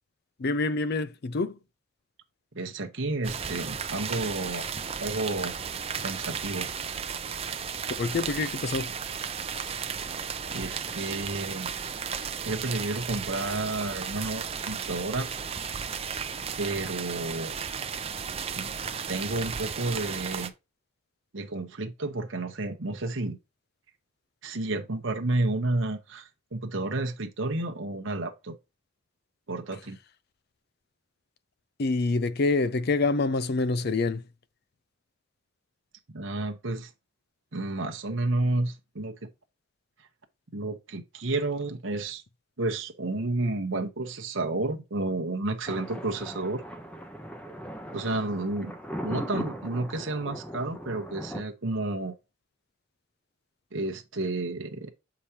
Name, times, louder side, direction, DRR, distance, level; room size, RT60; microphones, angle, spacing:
voice 1, 0.4-1.6 8.0-8.9 31.8-34.2, left 3 dB, 50° left, 0.5 m, -26 dB
voice 2, 2.5-4.6 5.0-5.5 6.0-6.7 10.5-11.7 12.4-15.3 16.6-17.5 18.6-18.7 19.1-20.5 21.3-23.4 24.4-28.6 29.5-30.0 36.1-36.9 37.5-39.1 40.5-42.2 42.6-46.6 47.9-48.7 49.0-52.1 53.7-54.9, right 2 dB, 65° right, 0.9 m, -31 dB
sound 1, 3.2-20.5, right 6 dB, 30° right, 0.6 m, -34 dB
Thunder, 45.7-51.4, equal, 5° left, 0.8 m, -38 dB
7.0 x 4.9 x 2.8 m
head